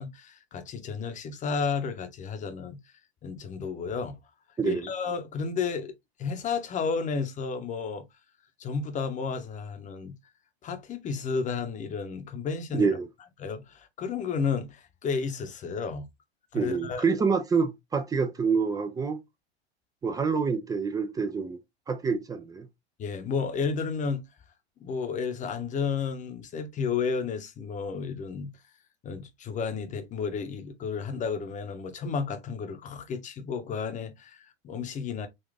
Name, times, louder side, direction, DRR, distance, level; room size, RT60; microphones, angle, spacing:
voice 1, 0.0-2.8 3.2-4.2 4.6-5.9 6.2-8.1 8.6-10.2 10.6-12.9 13.4-16.1 16.5-17.0 23.0-24.2 24.8-28.5 29.0-35.3, left 5 dB, 25° left, 0.8 m, -32 dB
voice 2, 4.6-4.9 12.8-13.1 16.5-19.2 20.0-21.6 21.9-22.7, right 5 dB, 10° right, 0.4 m, -27 dB
4.0 x 2.4 x 3.4 m
hypercardioid pair, 105°, 32 cm